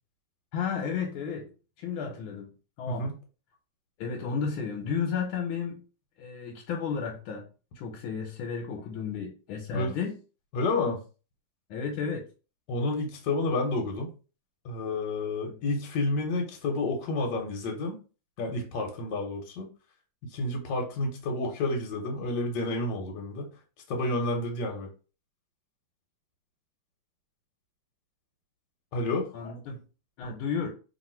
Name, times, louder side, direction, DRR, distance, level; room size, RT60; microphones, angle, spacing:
voice 1, 0.5-1.5 1.8-2.5 2.8-3.1 4.0-5.8 6.2-7.5 7.8-10.1 11.7-12.2 15.5-15.6 29.3-29.8 30.2-30.7, left 6 dB, 85° left, 1.6 m, -33 dB
voice 2, 2.9-3.2 9.7-9.9 10.5-11.0 12.7-14.1 14.6-18.0 18.4-19.7 20.2-23.5 23.9-24.9 28.9-29.3 30.2-30.3, left 2 dB, 65° left, 1.3 m, -30 dB
3.0 x 2.9 x 4.3 m
omnidirectional pair, 2.3 m